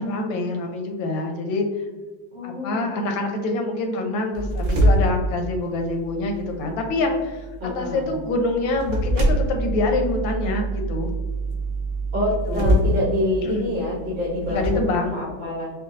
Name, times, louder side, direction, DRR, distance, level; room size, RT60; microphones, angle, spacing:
voice 1, 0.0-1.7 2.4-7.5 7.7-11.1 12.5-12.8 13.4-13.7 14.5-15.2, left 2 dB, 85° left, 3 dB, 1.4 m, -25 dB
voice 2, 2.3-2.9 7.6-8.1 12.1-15.7, left 1 dB, 85° right, -7 dB, 1.8 m, -26 dB
sound 1, 4.3-14.7, right 1 dB, 60° right, 0.9 m, -25 dB
5.0 x 2.3 x 2.5 m, 1.3 s
omnidirectional pair, 2.0 m